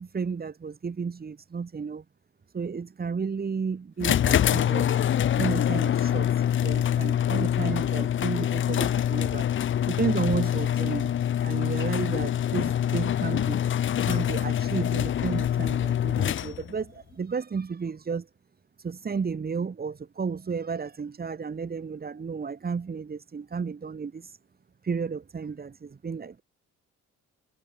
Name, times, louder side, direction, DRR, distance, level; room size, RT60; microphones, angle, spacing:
voice 1, 0.0-2.0 2.5-4.9 5.4-9.5 9.9-11.1 11.4-13.6 14.0-18.3 18.8-24.4 24.8-26.4, right 5 dB, 30° right, 1.7 m, -32 dB
sound 1, 4.0-16.8, left 10 dB, 40° left, 0.5 m, -25 dB
cardioid pair, 90°, 30 cm